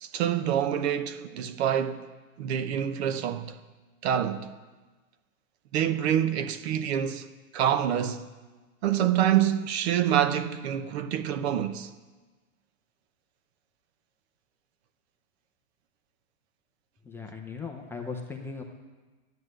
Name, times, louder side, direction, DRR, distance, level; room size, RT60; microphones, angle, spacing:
voice 1, 0.0-2.1 2.4-3.6 4.0-4.5 5.7-7.3 7.5-8.3 8.8-11.9, right 10 dB, 50° right, 1.0 m, -26 dB
voice 2, 17.1-18.6, left 4 dB, 5° left, 0.7 m, -38 dB
13.5 x 9.7 x 7.7 m
hypercardioid pair, 150°, 41 cm